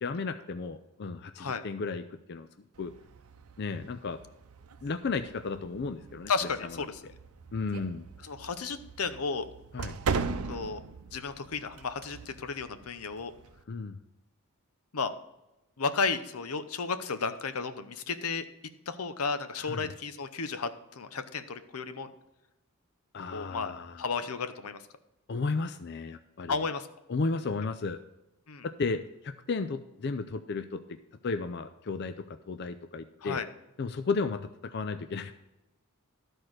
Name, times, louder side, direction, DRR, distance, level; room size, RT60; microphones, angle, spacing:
voice 1, 0.0-2.5 2.8-2.9 3.6-4.2 4.8-6.3 7.5-8.1 9.7-10.0 13.7-14.0 19.6-19.9 23.1-24.0 25.3-26.6 27.1-28.0 28.6-31.0 31.2-33.4 33.8-35.3, left 4 dB, 50° left, 10 dB, 0.5 m, -34 dB
sound 1, 2.7-13.6, right 5 dB, 90° right, 0.6 m, -40 dB
voice 2, 6.3-7.0 8.2-9.5 10.5-10.8 11.1-13.3 14.9-15.1 15.8-18.5 18.9-22.1 23.3-23.7 24.0-24.8 26.5-26.9 28.5-28.7 33.2-33.5, left 4 dB, 85° left, 11 dB, 0.8 m, -33 dB
12.5 x 4.5 x 6.4 m, 0.96 s
head